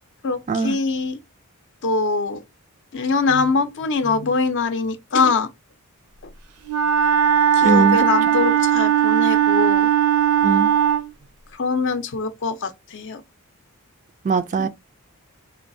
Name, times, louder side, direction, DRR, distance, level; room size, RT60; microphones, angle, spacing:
voice 1, 0.2-1.2 1.8-2.4 2.9-5.5 7.5-9.9 11.6-13.2 14.5-14.7, left 4 dB, 55° left, 0.5 m, -23 dB
Wind instrument woodwind instrument, 6.7-11.1, right 9 dB, 85° right, 0.6 m, -18 dB
voice 2, 7.6-8.0 10.4-10.7 14.2-14.7, right 4 dB, 35° right, 0.3 m, -20 dB
4.4 x 2.3 x 2.6 m
head